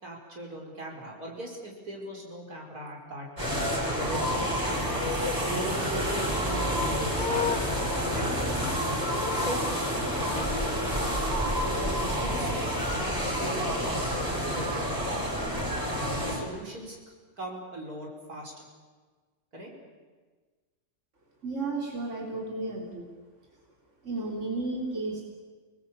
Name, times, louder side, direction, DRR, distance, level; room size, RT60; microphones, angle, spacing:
voice 1, 0.0-3.6 4.0-5.1 5.4-7.6 8.1-8.3 9.3-9.6 10.3-10.8 11.6-14.7 16.2-17.0 17.4-18.5 19.5-19.7, right 1 dB, 80° right, -1 dB, 5.6 m, -39 dB
sound 1, 3.4-16.4, equal, 15° right, 7.1 m, -29 dB
Livestock farm animals working animals, 6.5-9.9 10.2-11.5 15.3-16.5, left 7 dB, 85° left, 2.0 m, -37 dB
voice 2, 21.4-23.1 24.0-25.2, right 3 dB, 50° right, -2 dB, 3.8 m, -33 dB
28.5 x 20.0 x 8.6 m, 1.4 s
omnidirectional pair, 1.6 m